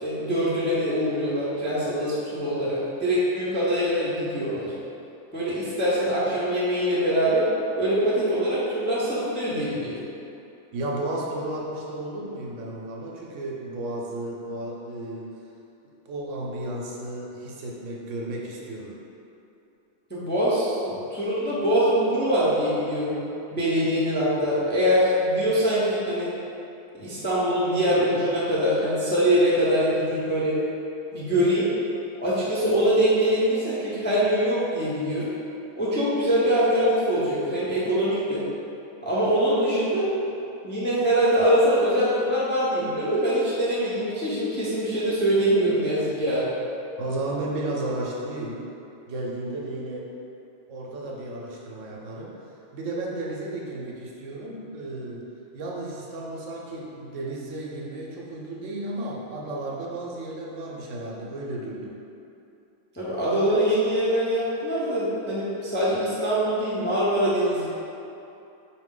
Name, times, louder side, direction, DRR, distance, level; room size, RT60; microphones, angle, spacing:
voice 1, 0.0-4.7 5.3-7.5 7.8-10.0 20.1-23.2 23.5-26.3 26.9-30.6 31.1-31.7 32.2-35.3 35.8-38.4 39.0-40.1 40.6-46.5 62.9-67.7, equal, 15° left, -9 dB, 0.4 m, -23 dB
voice 2, 10.7-15.3 15.8-19.0 47.0-48.7 49.1-50.1 50.7-52.5 52.7-55.3 55.5-62.0, right 2 dB, 75° right, -2 dB, 0.9 m, -33 dB
4.2 x 2.6 x 3.7 m, 2.8 s
omnidirectional pair, 1.4 m